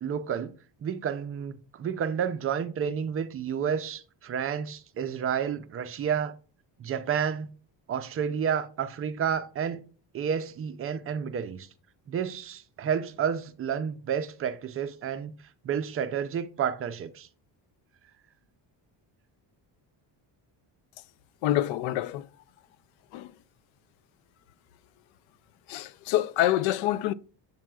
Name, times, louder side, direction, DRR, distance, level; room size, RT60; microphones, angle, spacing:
voice 1, 0.0-0.5 0.8-6.3 6.8-7.5 7.9-9.8 10.1-11.7 12.1-15.3 15.6-17.3, right 7 dB, 30° right, 0.4 m, -30 dB
voice 2, 21.4-22.3 23.1-23.3 25.7-27.1, left 13 dB, 90° left, 0.5 m, -26 dB
7.4 x 7.4 x 2.3 m
cardioid pair, 155°, 46 cm